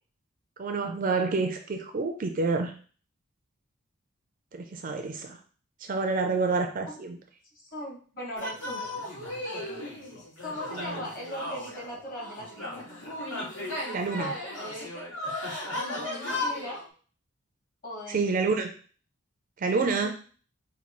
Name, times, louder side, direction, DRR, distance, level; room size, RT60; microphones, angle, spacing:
voice 1, 0.6-2.7 4.5-5.4 5.8-7.2 10.7-11.0 13.9-14.3 18.1-18.7 19.6-20.1, right 4 dB, 40° right, 5 dB, 0.4 m, -28 dB
voice 2, 7.5-8.9 10.4-12.9 14.2-14.8 16.2-16.8 17.8-18.3 19.9-20.1, equal, 40° left, -3 dB, 1.4 m, -39 dB
sound 1, 8.4-16.8, left 1 dB, 70° left, 1.8 m, -35 dB
5.1 x 2.3 x 3.0 m, 0.41 s
head